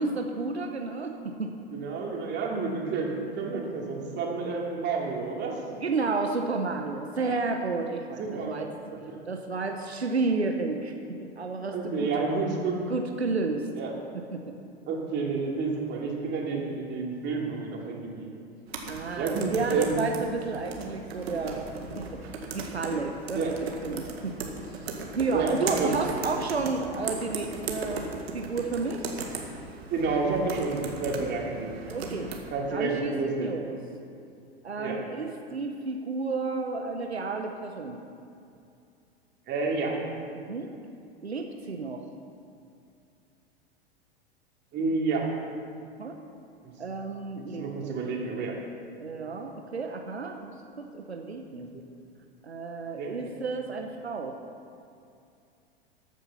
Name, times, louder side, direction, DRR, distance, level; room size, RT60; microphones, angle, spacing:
voice 1, 0.0-1.5 5.8-8.7 9.3-12.1 12.9-13.7 14.1-14.4 18.9-21.7 22.0-22.2 22.5-23.5 23.8-24.4 24.7-29.1 31.9-32.3 32.7-33.8 34.6-38.0 40.3-40.7 41.2-42.0 46.0-46.2 46.8-48.0 49.0-51.7 52.4-54.3, right 3 dB, 90° right, 4 dB, 1.0 m, -31 dB
voice 2, 1.7-5.6 7.3-7.4 8.2-8.6 8.9-9.0 11.7-12.9 13.7-13.9 14.8-18.4 19.2-20.0 23.3-23.5 25.3-26.2 29.9-31.7 32.5-33.5 34.8-35.0 39.5-39.9 44.7-45.3 46.6-46.7 47.4-48.6 51.7-51.8 53.0-53.3, right 4 dB, 35° right, -2 dB, 3.2 m, -30 dB
sound 1, 18.7-32.4, right 3 dB, 75° right, 2.0 m, -37 dB
15.0 x 9.4 x 5.8 m, 2.5 s
figure-of-eight pair, 95°, 31 cm